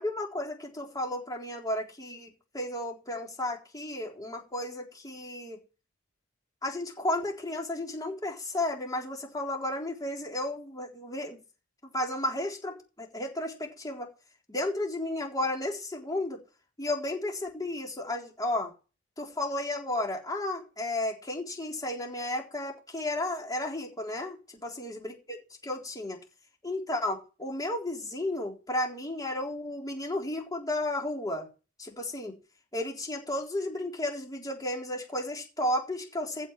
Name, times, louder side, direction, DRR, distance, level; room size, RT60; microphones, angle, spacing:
voice 1, 0.0-5.6 6.6-11.4 11.9-14.1 14.5-16.4 16.8-18.7 19.2-25.4 25.6-26.2 26.6-31.5 31.8-32.4 32.7-36.5, left 1 dB, 20° left, 3.9 m, -33 dB
15.0 x 5.4 x 7.7 m
head